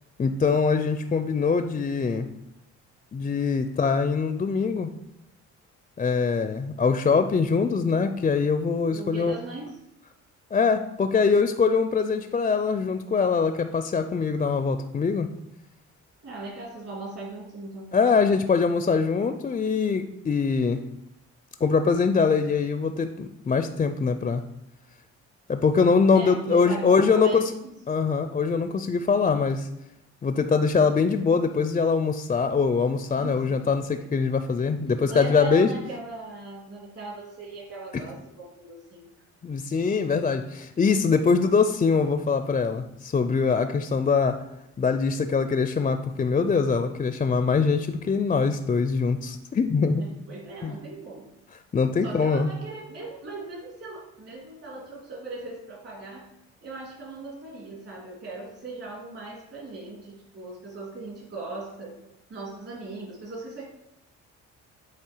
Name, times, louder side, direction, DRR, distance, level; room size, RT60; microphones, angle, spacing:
voice 1, 0.2-2.3 3.1-4.9 6.0-9.3 10.5-15.3 17.9-20.8 21.6-24.4 25.5-27.5 27.9-29.7 30.2-35.7 37.9-38.0 39.4-44.5 44.8-50.0 50.6-50.8 51.7-52.5, left 5 dB, 25° left, 9 dB, 0.4 m, -23 dB
voice 2, 8.9-9.8 16.2-18.0 26.1-28.1 33.2-33.7 35.0-39.1 50.0-51.3 52.0-56.3 56.6-62.0 62.3-63.6, right 2 dB, 50° right, -3 dB, 2.7 m, -39 dB
8.2 x 3.3 x 4.5 m, 0.86 s
cardioid pair, 90°, 30 cm